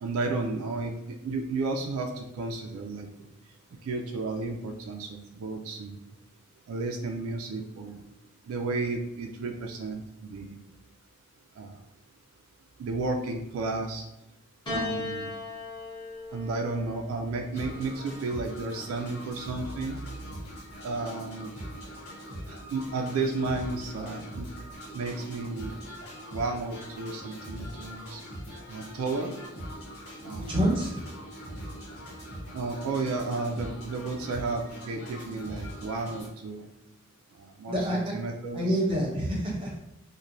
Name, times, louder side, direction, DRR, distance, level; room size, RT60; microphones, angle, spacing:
voice 1, 0.0-3.3 3.8-6.0 6.7-8.0 8.5-10.6 11.6-11.7 12.8-14.0 14.7-15.3 16.3-20.0 20.8-21.5 22.5-24.5 24.9-28.2 28.7-29.3 30.2-30.5 32.5-36.7 37.4-38.6, right 3 dB, 80° right, 3 dB, 0.3 m, -33 dB
Piano, 14.7-19.1 20.2-20.9, left 3 dB, 20° left, 0.7 m, -39 dB
sound 1, 17.5-36.3, equal, 85° left, 1.1 m, -42 dB
voice 2, 30.3-31.0 37.7-38.1 38.5-39.8, equal, 25° right, -3 dB, 0.6 m, -27 dB
3.0 x 2.1 x 2.5 m, 0.88 s
head